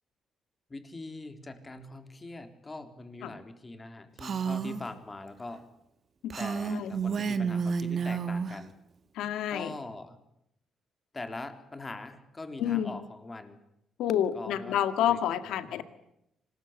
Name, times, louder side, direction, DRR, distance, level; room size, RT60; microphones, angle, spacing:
voice 1, 0.7-5.6 6.4-8.7 9.5-10.2 11.1-13.6 14.3-14.8 15.1-15.2 15.5-15.8, left 2 dB, 25° left, 7 dB, 3.8 m, -42 dB
Female speech woman speaking, 4.2-4.8 6.3-8.6, right 6 dB, 50° right, 1.8 m, -30 dB
voice 2, 9.2-9.7 12.6-12.9 14.0-15.8, left 10 dB, 85° left, 11 dB, 1.9 m, -29 dB
25.5 x 20.5 x 9.3 m, 0.82 s
cardioid pair, 90°, 0 cm